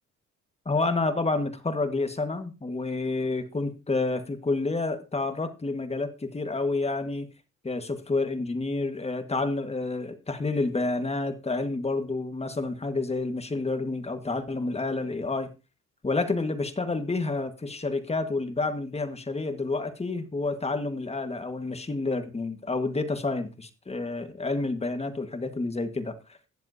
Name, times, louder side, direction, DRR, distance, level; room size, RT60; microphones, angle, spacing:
voice 1, 0.6-7.3 7.6-15.5 16.0-26.1, left 3 dB, 20° left, 8 dB, 1.6 m, -29 dB
19.0 x 7.5 x 2.8 m, 0.29 s
cardioid pair, 90°, 30 cm